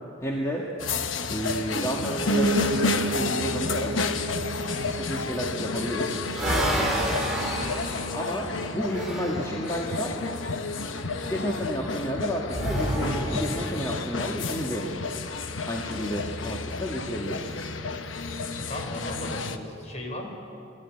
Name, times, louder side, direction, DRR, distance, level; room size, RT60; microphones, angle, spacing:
voice 1, 0.2-0.6 1.3-3.9 4.9-6.2 8.1-10.2 11.3-14.9 15.7-17.6, equal, 15° left, -3 dB, 1.8 m, -31 dB
sound 1, 0.8-19.6, left 4 dB, 90° left, 1.0 m, -31 dB
Piano, 2.3-11.4 11.8-13.0 13.3-13.4 13.6-13.7 13.9-14.0 14.6-14.7, right 2 dB, 80° right, 0.6 m, -34 dB
sound 2, 5.6-9.5 12.5-13.9, right 1 dB, 5° right, 4.2 m, -29 dB
voice 2, 18.6-20.3, left 1 dB, 35° left, 2 dB, 3.8 m, -36 dB
20.5 x 14.0 x 9.9 m, 2.7 s
head